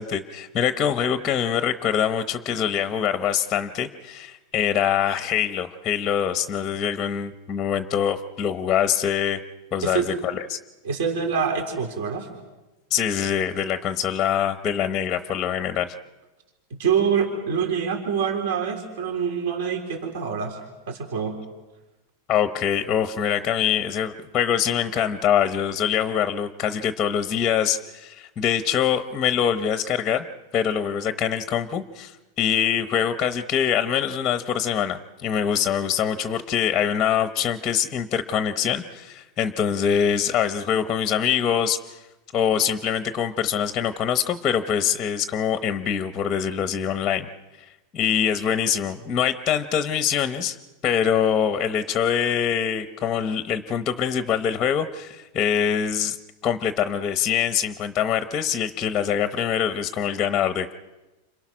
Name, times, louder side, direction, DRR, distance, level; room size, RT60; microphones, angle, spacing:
voice 1, 0.0-9.4 9.7-10.6 12.9-15.9 22.3-30.2 30.5-42.0 42.3-47.3 47.6-47.7 47.9-50.6 50.8-56.2 56.4-60.7, left 8 dB, 20° left, 10 dB, 0.9 m, -24 dB
voice 2, 10.8-12.3 16.8-20.6 20.9-21.3, right 6 dB, 55° right, 2 dB, 4.0 m, -25 dB
29.5 x 27.0 x 6.2 m, 1.1 s
supercardioid pair, 175°, 0 cm